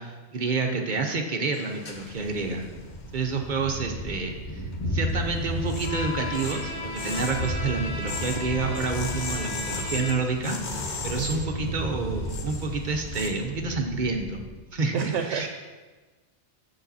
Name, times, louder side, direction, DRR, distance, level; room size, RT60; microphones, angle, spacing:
voice 1, 0.0-2.7 3.1-4.6 4.9-15.0 15.3-15.5, right 3 dB, 45° right, 3 dB, 0.8 m, -29 dB
sound 1, 1.5-3.9 4.3-13.3, left 3 dB, 45° left, 0.8 m, -38 dB
Thunder, 1.9-14.6, equal, 20° left, 1.3 m, -34 dB
Bowed string instrument, 5.8-10.5, left 2 dB, 80° left, 1.7 m, -36 dB
voice 2, 11.1-11.5 14.9-15.5, right 7 dB, 80° right, 4 dB, 0.9 m, -29 dB
7.1 x 6.9 x 4.1 m, 1.3 s
omnidirectional pair, 1.2 m